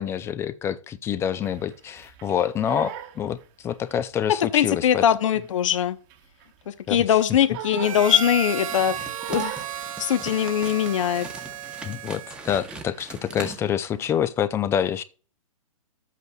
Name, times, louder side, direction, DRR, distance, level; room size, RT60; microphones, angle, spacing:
voice 1, 0.0-5.0 6.9-7.0 11.8-15.0, left 9 dB, 15° left, 0.4 m, -27 dB
Crying sobbing, 1.4-4.1 4.4-6.7 7.0-8.7 9.2-11.1 11.4-11.7 12.0-13.6, right 12 dB, 35° right, 1.1 m, -40 dB
voice 2, 4.5-6.0 6.7-9.6 10.0-11.3, left 10 dB, 60° left, 1.0 m, -22 dB
Harmonica, 7.8-12.8, right 10 dB, 70° right, 0.5 m, -34 dB
sound 1, 8.7-14.2, right 2 dB, 5° right, 0.9 m, -41 dB
12.0 x 8.2 x 2.3 m
hypercardioid pair, 130°, 18 cm